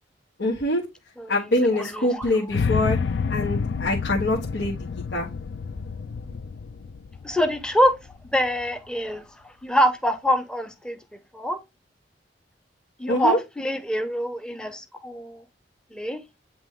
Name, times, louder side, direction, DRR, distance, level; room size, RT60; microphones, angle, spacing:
voice 1, 0.4-0.8 1.3-3.0 3.3-4.8 5.1-5.3 13.1-13.4, left 1 dB, 90° left, 1.2 m, -24 dB
voice 2, 1.7-2.5 7.2-7.9 8.3-9.2 9.6-11.0 11.3-11.6 13.0-15.4 15.9-16.2, equal, 5° left, 0.8 m, -25 dB
sound 1, 2.5-8.6, left 5 dB, 70° left, 0.4 m, -29 dB
8.8 x 3.0 x 3.6 m
head